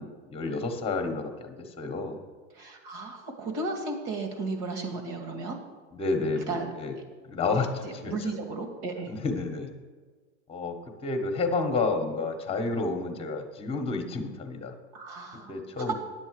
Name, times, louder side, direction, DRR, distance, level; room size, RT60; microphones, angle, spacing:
voice 1, 0.0-2.2 5.9-6.9 7.3-8.3 9.1-9.7 10.5-14.7 15.5-15.9, left 3 dB, 15° left, 5 dB, 1.4 m, -30 dB
voice 2, 2.5-5.6 6.5-7.0 7.8-9.1 14.9-15.9, right 3 dB, 50° right, 4 dB, 2.2 m, -34 dB
9.9 x 8.2 x 4.8 m, 1.5 s
supercardioid pair, 125°, 36 cm